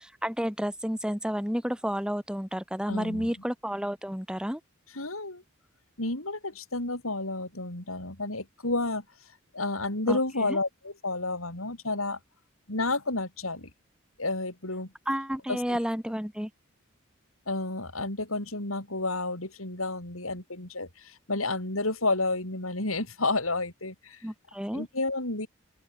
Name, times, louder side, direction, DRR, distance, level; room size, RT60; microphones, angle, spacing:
voice 1, 0.2-4.6 10.1-10.2 10.5-10.6 15.1-16.5 24.2-24.9, equal, 5° right, 3.9 m, -31 dB
voice 2, 2.9-3.3 4.9-5.4 6.0-9.0 9.5-12.2 12.7-13.7 14.2-14.9 15.5-15.8 17.5-24.3 24.7-25.5, left 2 dB, 85° left, 7.0 m, -31 dB
open air
head